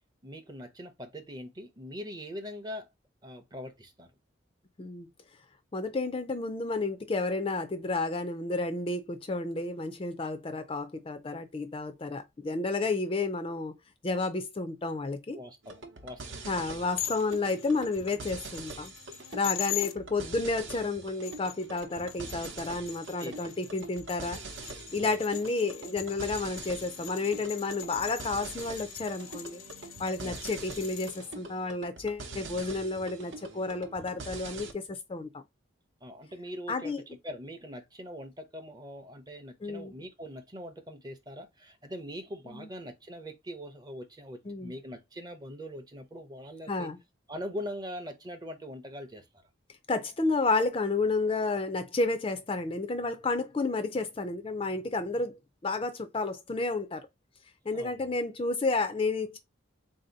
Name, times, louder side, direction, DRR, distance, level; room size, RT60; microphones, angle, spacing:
voice 1, 0.2-2.9 3.2-4.1 15.3-16.4 22.2-22.4 23.2-23.5 25.0-25.2 30.2-30.4 36.0-36.9 37.2-46.9 47.3-49.2 57.7-58.1, equal, 20° right, 0.6 m, -42 dB
voice 2, 5.7-13.7 14.0-15.4 16.5-18.9 19.3-24.4 24.9-29.6 30.0-35.4 36.7-37.0 39.6-39.9 42.5-42.7 44.5-44.7 46.7-47.0 49.9-57.1 57.7-59.4, left 3 dB, 25° left, 0.4 m, -31 dB
sound 1, 15.6-34.7, right 3 dB, 70° right, 0.8 m, -44 dB
sound 2, 17.0-19.9 21.0-31.2, left 13 dB, 90° left, 0.7 m, -42 dB
3.9 x 2.7 x 3.8 m
head